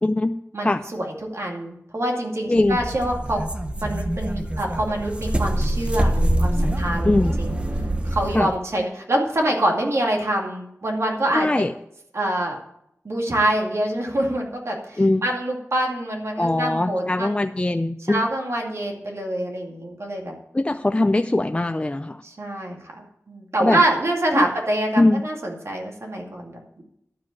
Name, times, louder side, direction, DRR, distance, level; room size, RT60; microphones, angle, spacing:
voice 1, 0.0-0.4 0.6-0.8 2.5-2.8 7.0-7.3 8.3-8.5 11.3-11.7 15.0-15.3 16.4-18.2 20.5-22.2 23.6-23.8 24.3-24.5 25.0-25.2, left 2 dB, 25° left, 8 dB, 0.4 m, -21 dB
voice 2, 0.5-3.4 3.8-7.1 7.4-7.6 8.0-11.7 12.1-12.6 13.0-17.3 18.0-20.3 22.2-26.8, right 1 dB, 60° right, 0 dB, 2.3 m, -25 dB
sound 1, 2.6-8.5, right 1 dB, 20° right, 0.9 m, -24 dB
11.5 x 5.0 x 8.4 m, 0.76 s
wide cardioid pair, 55°, 5 cm